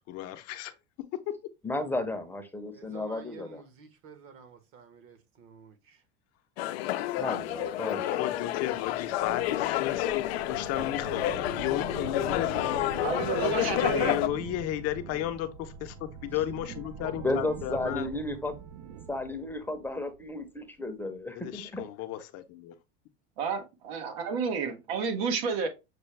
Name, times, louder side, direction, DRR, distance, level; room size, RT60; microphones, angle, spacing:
voice 1, 0.1-0.7 1.3-1.4 8.1-13.1 13.8-18.1 21.4-22.7, left 12 dB, 55° left, 0.7 m, -34 dB
voice 2, 1.6-3.6 7.2-8.4 17.2-18.6 19.1-21.8, left 2 dB, 5° left, 0.7 m, -33 dB
voice 3, 2.7-6.0, right 5 dB, 45° right, 1.1 m, -50 dB
sound 1, 6.6-14.3, left 13 dB, 85° left, 0.5 m, -30 dB
sound 2, 8.5-20.6, right 6 dB, 60° right, 0.6 m, -44 dB
voice 4, 13.0-14.2 23.4-25.7, right 5 dB, 85° right, 1.3 m, -30 dB
6.6 x 2.2 x 3.3 m
supercardioid pair, 125°, 30 cm